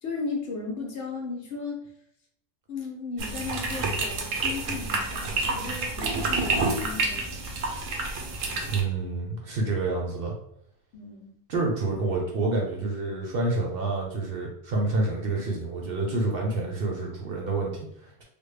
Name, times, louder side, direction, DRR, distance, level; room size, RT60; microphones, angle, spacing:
voice 1, 0.0-1.9 2.7-7.5 10.9-11.3, left 4 dB, 70° left, 1 dB, 1.0 m, -36 dB
sound 1, 3.2-8.8, right 3 dB, 85° right, 1.0 m, -29 dB
voice 2, 8.6-10.3 11.5-18.2, right 3 dB, 55° right, -1 dB, 0.8 m, -28 dB
3.4 x 2.1 x 3.2 m, 0.74 s
omnidirectional pair, 1.3 m